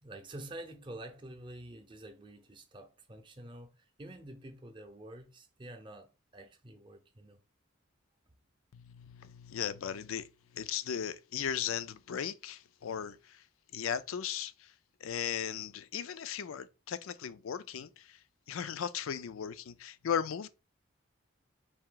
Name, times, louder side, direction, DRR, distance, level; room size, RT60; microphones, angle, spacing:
voice 1, 0.0-6.1 6.3-7.4, right 1 dB, 25° right, 0.6 m, -48 dB
voice 2, 8.7-10.3 10.5-13.2 13.7-14.5 15.0-17.9 18.5-20.5, left 8 dB, 80° left, 0.4 m, -36 dB
4.3 x 2.7 x 3.7 m
head